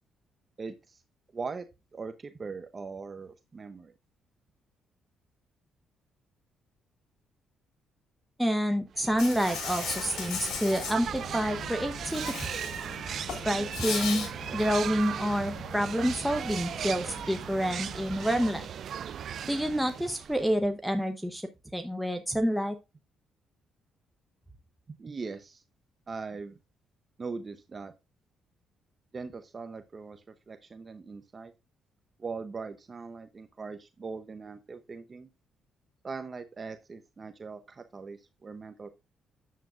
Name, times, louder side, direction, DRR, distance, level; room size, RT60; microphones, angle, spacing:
voice 1, 0.6-1.0 1.3-1.7 1.9-3.9 24.9-25.6 26.1-26.6 27.2-27.9 29.1-31.5 32.2-35.3 36.0-38.9, right 4 dB, 35° right, 9 dB, 0.7 m, -40 dB
voice 2, 8.4-12.3 13.4-14.3 14.5-18.7 19.5-22.8, equal, ahead, 6 dB, 0.8 m, -28 dB
sound 1, 9.0-20.6, right 9 dB, 60° right, 0.3 m, -37 dB
Insect, 9.2-10.9 12.1-12.9 13.2-14.3, left 6 dB, 75° left, 2.9 m, -36 dB
sound 2, 11.0-18.7, left 5 dB, 50° left, 1.1 m, -46 dB
9.4 x 7.4 x 2.5 m, 0.25 s
cardioid pair, 90°, 0 cm